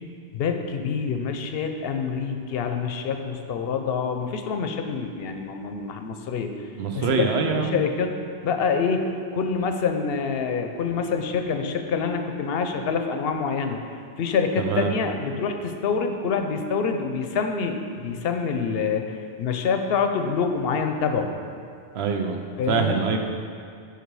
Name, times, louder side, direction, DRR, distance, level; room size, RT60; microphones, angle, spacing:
voice 1, 0.3-6.5 6.9-8.1 8.4-13.8 14.2-21.3 22.6-23.0, left 5 dB, 70° left, 6 dB, 0.8 m, -26 dB
voice 2, 6.8-7.8 14.6-14.9 21.9-22.4 22.7-23.2, right 5 dB, 80° right, 4 dB, 0.9 m, -24 dB
6.7 x 4.8 x 4.7 m, 2.3 s
omnidirectional pair, 1.1 m